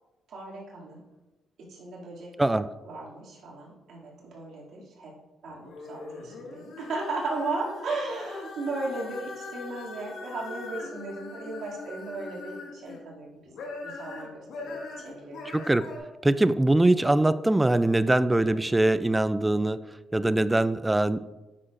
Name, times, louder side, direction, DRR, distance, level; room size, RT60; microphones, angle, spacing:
voice 1, 0.3-1.0 1.7-2.3 2.8-5.1 5.4-13.5 13.8-15.4, right 3 dB, 70° right, -4 dB, 2.4 m, -36 dB
sound 1, 5.5-13.0 13.4-16.0, left 3 dB, 75° left, 1.6 m, -41 dB
voice 2, 15.5-15.9 16.2-19.8 20.1-21.2, right 2 dB, 10° right, 14 dB, 0.3 m, -22 dB
9.8 x 6.2 x 2.5 m, 1.1 s
cardioid pair, 90°, 0 cm